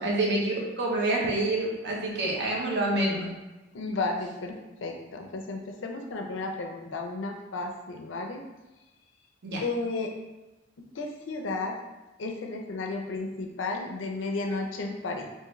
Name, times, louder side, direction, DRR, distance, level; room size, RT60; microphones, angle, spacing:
voice 1, 0.0-3.3 9.4-9.6, right 2 dB, 65° right, -2 dB, 0.8 m, -27 dB
voice 2, 3.7-8.4 9.6-10.1 10.9-11.7 12.2-15.3, left 3 dB, 75° left, 3 dB, 0.5 m, -33 dB
3.6 x 2.5 x 3.1 m, 1.1 s
head